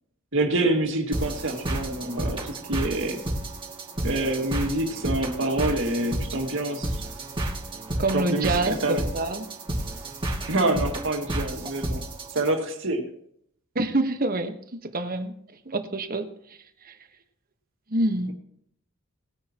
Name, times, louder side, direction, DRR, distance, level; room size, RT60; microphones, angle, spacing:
voice 1, 0.3-3.2 4.0-7.0 8.1-9.0 10.5-12.0 12.3-13.1, right 2 dB, 60° right, 2 dB, 2.2 m, -26 dB
sound 1, 1.1-12.5, right 1 dB, 25° right, 2.4 m, -31 dB
voice 2, 8.0-9.5 13.7-15.3 15.6-16.3 16.8-16.9 17.9-18.3, right 2 dB, 40° right, 7 dB, 1.3 m, -26 dB
19.5 x 10.5 x 3.0 m, 0.70 s
head